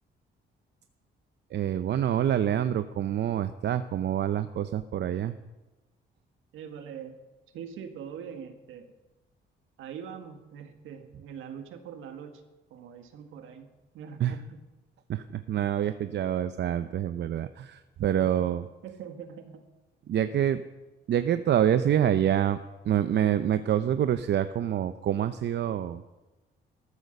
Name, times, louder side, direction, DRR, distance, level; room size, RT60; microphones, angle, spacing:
voice 1, 1.5-5.3 14.2-14.3 15.1-18.7 20.1-20.6 21.1-22.6 22.8-26.0, right 10 dB, 60° right, 11 dB, 0.7 m, -26 dB
voice 2, 6.5-7.2 7.5-8.9 9.8-12.4 12.7-13.7 13.9-14.6 18.2-18.5 18.8-19.6 20.4-20.6, right 7 dB, 85° right, 6 dB, 2.0 m, -43 dB
13.5 x 13.5 x 6.7 m, 1.1 s
cardioid pair, 90°, 20 cm